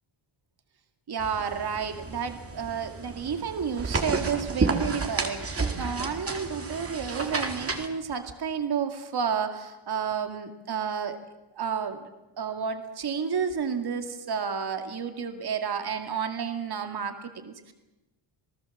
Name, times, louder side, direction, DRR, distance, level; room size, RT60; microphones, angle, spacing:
voice 1, 1.1-11.2 11.6-12.1 12.4-17.7, right 7 dB, 50° right, 6 dB, 2.4 m, -31 dB
sound 1, 1.2-7.9, right 3 dB, 25° right, 2.4 m, -31 dB
28.0 x 18.5 x 7.3 m, 1.0 s
wide cardioid pair, 140°, 50 cm